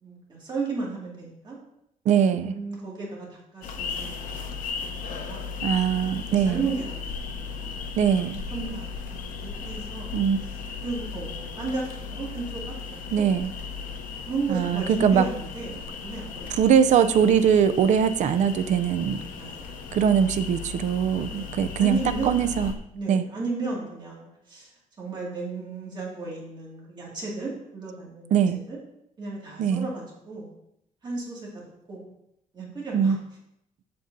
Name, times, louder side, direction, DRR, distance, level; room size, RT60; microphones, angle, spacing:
voice 1, 0.0-1.6 2.3-4.5 5.1-5.5 6.3-7.8 8.5-10.1 10.8-13.2 14.3-16.6 19.4-19.7 21.3-21.5 21.8-22.4 22.9-24.7 25.0-28.3 28.7-28.8 29.2-30.5 31.0-32.1 32.5-33.1, right 3 dB, 35° right, -4 dB, 2.1 m, -34 dB
voice 2, 2.1-2.5 5.6-6.6 8.0-8.4 10.1-10.4 13.1-13.5 14.5-15.2 16.6-19.2 19.9-22.0 22.2-22.7 23.1-23.3 28.3-28.6 29.6-29.9 32.9-33.2, right 8 dB, 65° right, 11 dB, 0.4 m, -21 dB
sound 1, 3.6-22.7, left 5 dB, 85° left, 0.8 m, -36 dB
7.6 x 6.9 x 2.6 m, 0.79 s
cardioid pair, 155°, 14 cm